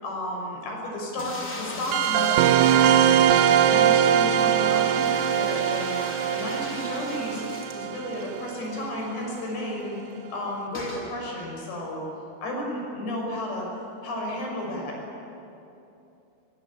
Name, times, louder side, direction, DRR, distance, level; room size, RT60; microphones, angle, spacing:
voice 1, 0.0-3.3 3.7-6.0 6.3-7.4 7.7-10.0 10.3-12.0 12.4-13.7 14.0-15.0, left 1 dB, 80° left, -1 dB, 8.4 m, -33 dB
sound 1, 1.2-8.3 8.7-8.8 9.0-9.1 10.7-11.1, left 2 dB, 20° left, 3.4 m, -37 dB
sound 2, 1.9-9.0, right 10 dB, 80° right, 3.0 m, -22 dB
23.5 x 23.5 x 8.7 m, 2.8 s
omnidirectional pair, 5.0 m